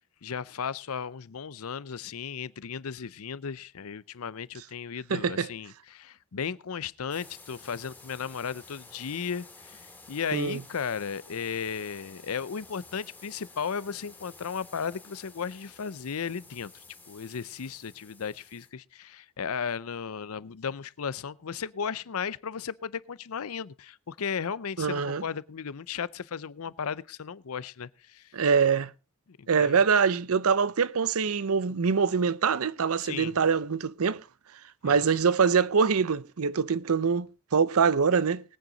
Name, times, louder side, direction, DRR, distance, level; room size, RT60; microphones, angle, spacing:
voice 1, 0.2-16.7 17.1-28.3 29.3-29.7 33.0-33.4 34.8-35.0, left 6 dB, 70° left, 0.6 m, -35 dB
voice 2, 5.1-5.5 10.3-10.6 24.8-25.2 28.3-28.9 29.5-34.2 34.8-38.4, right 6 dB, 70° right, 0.6 m, -24 dB
sound 1, 7.1-18.7, left 3 dB, 10° left, 2.6 m, -52 dB
20.5 x 9.2 x 3.9 m
head